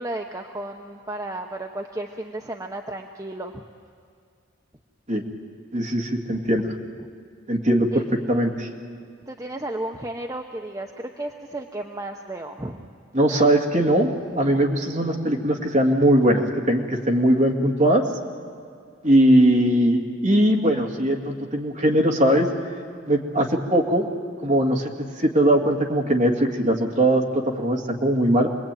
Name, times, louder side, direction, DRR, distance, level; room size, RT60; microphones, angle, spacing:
voice 1, 0.0-3.6 6.3-6.7 7.9-8.0 9.3-12.9, right 1 dB, 15° right, 3 dB, 0.8 m, -33 dB
voice 2, 5.7-6.7 7.5-8.0 8.3-8.7 13.1-18.0 19.0-22.5 23.1-24.1 24.4-24.9 25.2-28.5, right 1 dB, 35° right, 1 dB, 2.2 m, -20 dB
27.0 x 21.0 x 9.1 m, 2.2 s
head